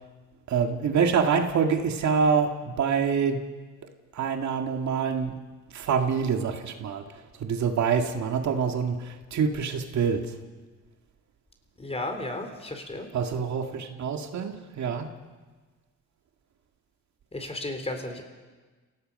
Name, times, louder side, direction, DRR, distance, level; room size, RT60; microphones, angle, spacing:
voice 1, 0.5-3.4 4.1-5.4 5.7-10.4 13.1-15.1, right 6 dB, 65° right, 4 dB, 2.0 m, -26 dB
voice 2, 11.8-13.1 17.3-18.2, left 2 dB, 20° left, 5 dB, 3.7 m, -34 dB
29.5 x 17.5 x 5.4 m, 1.3 s
cardioid pair, 90°, 30 cm